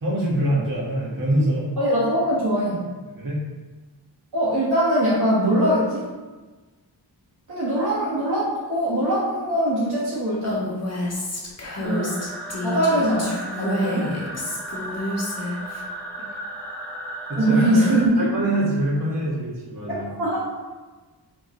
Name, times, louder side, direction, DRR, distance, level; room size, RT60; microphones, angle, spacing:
voice 1, 0.0-1.7 3.2-3.4 14.0-14.2 16.3-16.4 17.3-20.1, right 1 dB, 50° right, -6 dB, 1.8 m, -25 dB
voice 2, 1.8-2.8 4.3-6.1 7.5-10.8 11.8-12.2 12.6-14.1 17.4-18.3 20.2-20.5, right 1 dB, 70° right, -9 dB, 1.5 m, -22 dB
Female speech woman speaking, 10.4-15.8, left 1 dB, 40° left, 1.2 m, -29 dB
sound 1, 11.8-18.1, right 1 dB, 5° left, 0.9 m, -35 dB
7.8 x 3.8 x 3.2 m, 1.3 s
wide cardioid pair, 100°, 41 cm